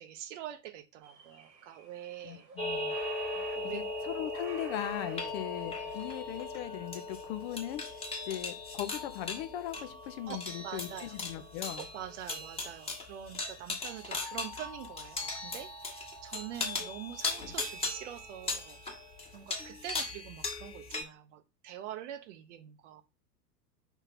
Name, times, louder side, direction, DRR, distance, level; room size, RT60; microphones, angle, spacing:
voice 1, 0.0-2.5 3.5-3.8 5.2-5.3 5.8-5.9 10.3-11.2 11.8-18.8 19.3-23.0, right 11 dB, 45° right, 0.9 m, -45 dB
sound 1, 1.0-6.0, right 4 dB, 80° right, 1.9 m, -53 dB
voice 2, 2.2-3.0 3.3-3.5 3.7-11.8, left 12 dB, 40° left, 0.8 m, -39 dB
sound 2, 2.6-21.0, left 3 dB, 10° left, 1.5 m, -38 dB
5.5 x 3.5 x 5.7 m
figure-of-eight pair, 100°, 50 cm